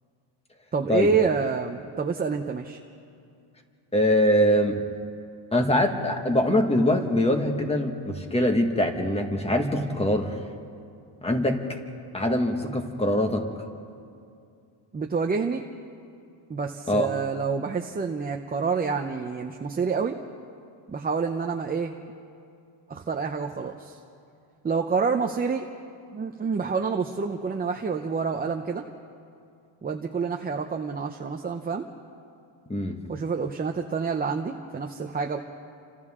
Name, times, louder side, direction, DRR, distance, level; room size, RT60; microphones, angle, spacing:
voice 1, 0.7-2.8 14.9-15.6 16.5-20.2 20.9-21.9 22.9-24.0 24.6-25.7 26.1-28.8 29.8-31.8 33.1-35.4, right 5 dB, 20° right, 3 dB, 0.6 m, -28 dB
voice 2, 3.9-4.8 5.5-10.4 11.2-11.6 12.1-13.5 16.9-17.1 32.7-33.0, left 1 dB, 10° left, 4 dB, 1.7 m, -23 dB
30.0 x 26.0 x 3.7 m, 2.4 s
cardioid pair, 155°, 48 cm